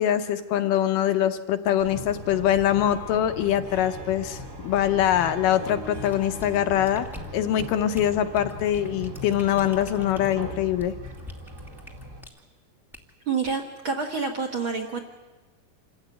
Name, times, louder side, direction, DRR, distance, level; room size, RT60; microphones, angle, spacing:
voice 1, 0.0-7.1 7.3-10.9, left 11 dB, 70° left, 9 dB, 2.2 m, -23 dB
sound 1, 1.8-12.2, equal, 35° right, 1.3 m, -39 dB
Harp, 2.6-10.9, right 1 dB, 85° right, 8.4 m, -49 dB
sound 2, 6.1-12.4 12.9-13.1 13.4-13.6, left 1 dB, ahead, 0.5 m, -46 dB
voice 2, 13.3-15.0, right 5 dB, 55° right, 3 dB, 1.4 m, -28 dB
27.0 x 15.0 x 9.3 m, 1.2 s
omnidirectional pair, 4.5 m